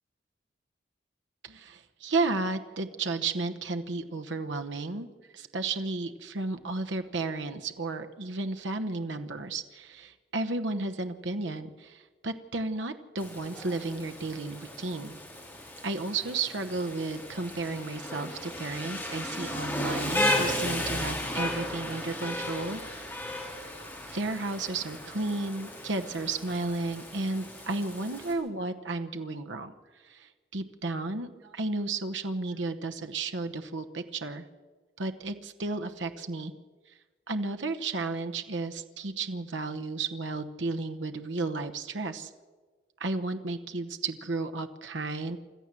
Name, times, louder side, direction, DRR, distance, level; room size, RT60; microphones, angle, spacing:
voice 1, 1.4-5.1 5.3-15.2 15.8-23.4 24.1-34.4 35.0-36.5 36.9-37.0 37.3-42.3 43.0-45.4, right 3 dB, 70° right, 7 dB, 1.0 m, -33 dB
Rain, 13.2-28.3, left 1 dB, 10° left, 3.7 m, -35 dB
26.0 x 13.5 x 7.5 m, 1.4 s
head